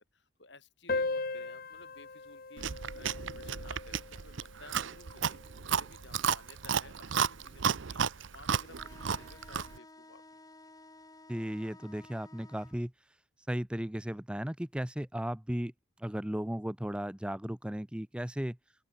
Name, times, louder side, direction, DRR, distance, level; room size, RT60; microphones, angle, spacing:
voice 1, 0.1-10.2, left 3 dB, 60° left, 6.1 m, -56 dB
sound 1, 0.9-5.9, left 3 dB, 45° left, 0.9 m, -39 dB
Chewing mastication, 2.6-9.8, right 7 dB, 70° right, 0.7 m, -33 dB
sound 2, 8.6-12.8, left 2 dB, 20° left, 7.0 m, -55 dB
voice 2, 11.3-12.9 13.5-15.7 16.0-18.6, equal, 5° right, 0.5 m, -35 dB
open air
head